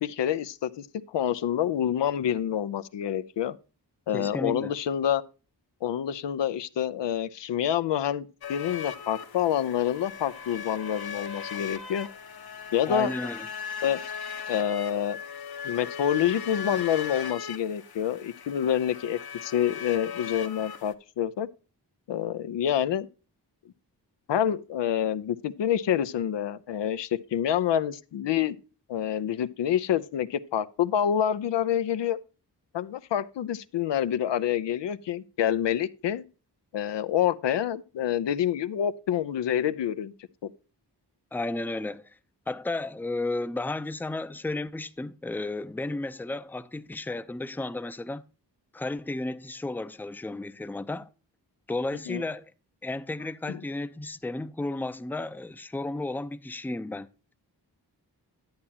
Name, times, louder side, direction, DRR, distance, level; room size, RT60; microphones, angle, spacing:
voice 1, 0.0-3.5 4.1-5.2 5.8-12.1 12.7-13.1 13.8-14.0 14.5-15.2 15.6-21.5 22.1-23.1 24.3-28.6 28.9-32.2 32.7-36.2 36.7-40.1 40.4-40.5 52.1-52.2 53.5-53.6, left 10 dB, 80° left, 0.6 m, -27 dB
voice 2, 4.1-4.7 12.9-13.5 41.3-42.2 42.5-48.2 48.7-51.1 51.7-52.5 52.8-57.1, left 2 dB, 5° left, 0.5 m, -33 dB
sound 1, 8.4-20.9, left 7 dB, 60° left, 1.0 m, -38 dB
10.5 x 8.5 x 2.8 m
cardioid pair, 50°, 42 cm